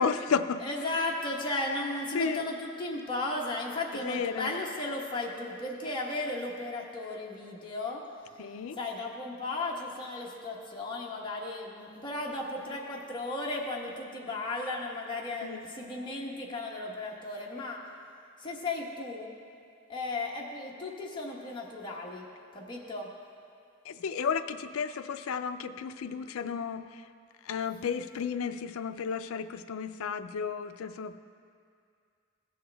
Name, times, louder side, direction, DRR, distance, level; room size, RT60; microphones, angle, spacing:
voice 1, 0.0-0.6 2.1-2.4 4.0-4.5 8.4-8.8 15.4-15.6 23.9-27.0 27.4-31.2, left 6 dB, 70° left, 10 dB, 0.4 m, -33 dB
voice 2, 0.6-8.0 8.7-17.8 18.4-19.3 19.9-22.2 22.5-23.1, left 2 dB, 20° left, -3 dB, 1.0 m, -35 dB
16.5 x 6.4 x 3.4 m, 2.3 s
head